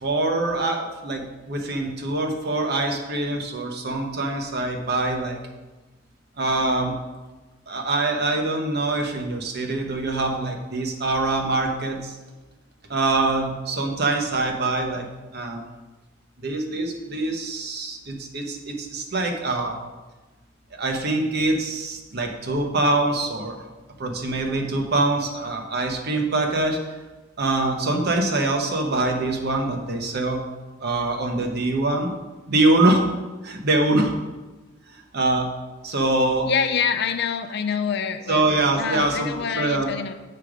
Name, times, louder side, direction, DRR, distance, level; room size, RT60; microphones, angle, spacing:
voice 1, 0.0-5.4 6.4-6.9 7.7-12.2 12.9-15.1 15.3-15.6 16.4-19.8 20.7-23.5 24.0-26.8 27.4-30.4 30.8-32.1 32.5-33.0 33.4-34.1 35.1-35.5 35.8-36.5 38.3-39.9, right 2 dB, 55° right, 3 dB, 1.0 m, -24 dB
voice 2, 36.5-38.5 38.8-40.1, left 6 dB, 60° left, 9 dB, 0.5 m, -26 dB
6.7 x 4.9 x 5.0 m, 1.2 s
head